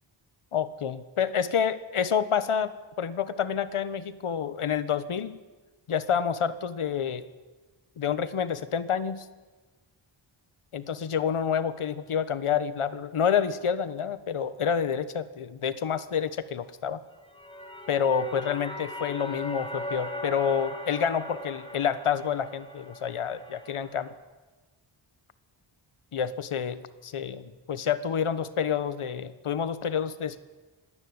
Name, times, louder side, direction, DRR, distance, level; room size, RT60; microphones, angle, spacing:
voice 1, 0.5-2.7 3.0-5.4 5.9-7.3 8.0-9.3 10.7-17.0 17.9-24.1 26.1-30.4, left 7 dB, 80° left, 13 dB, 1.4 m, -28 dB
sound 1, 17.1-24.1, left 1 dB, 10° left, 3.9 m, -39 dB
25.0 x 18.5 x 9.7 m, 1.3 s
wide cardioid pair, 90°, 50 cm